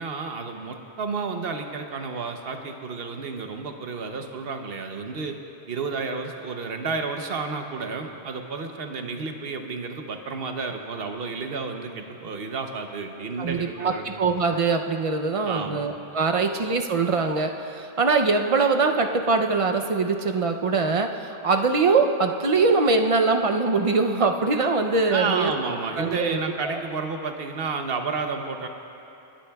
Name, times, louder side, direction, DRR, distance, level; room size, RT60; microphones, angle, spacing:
voice 1, 0.0-5.4 5.7-14.2 15.4-15.8 16.3-16.5 25.1-28.7, right 4 dB, 65° right, 5 dB, 1.0 m, -31 dB
voice 2, 13.4-25.5 26.0-26.4 26.6-26.8, right 4 dB, 40° right, 4 dB, 0.5 m, -23 dB
28.0 x 10.0 x 2.3 m, 2.9 s
omnidirectional pair, 1.1 m